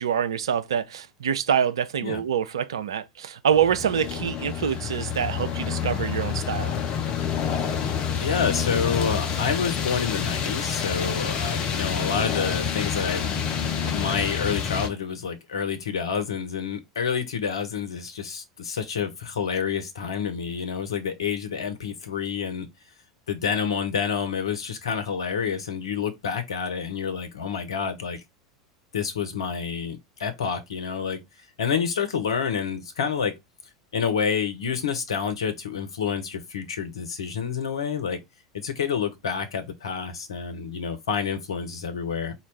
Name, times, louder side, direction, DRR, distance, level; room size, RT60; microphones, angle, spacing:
voice 1, 0.0-6.7, right 8 dB, 75° right, 0.4 m, -25 dB
sound 1, 3.5-14.9, left 7 dB, 40° left, 0.7 m, -28 dB
voice 2, 8.2-13.3 13.9-22.7 23.3-28.2 28.9-31.2 31.6-33.3 33.9-38.2 38.5-42.3, left 6 dB, 75° left, 0.7 m, -28 dB
4.1 x 2.3 x 3.3 m
figure-of-eight pair, 80°, 3 cm